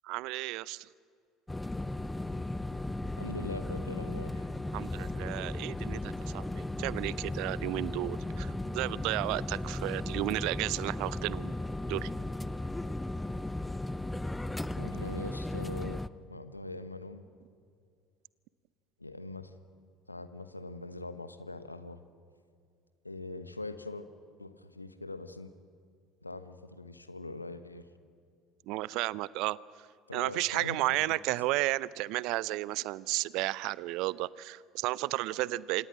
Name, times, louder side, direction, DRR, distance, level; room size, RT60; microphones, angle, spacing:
voice 1, 0.0-0.9 4.7-11.5 11.9-12.1 28.7-29.6 30.1-35.9, right 19 dB, 55° right, 21 dB, 0.6 m, -33 dB
sound 1, 1.5-16.1, left 2 dB, 10° left, 0.7 m, -36 dB
voice 2, 3.2-4.5 14.8-17.3 19.0-19.5 20.1-22.0 23.0-24.1 24.4-25.5 26.2-27.8 30.1-31.2, left 2 dB, 85° left, 11 dB, 1.1 m, -42 dB
28.0 x 27.0 x 6.2 m, 2.3 s
figure-of-eight pair, 65°, 0 cm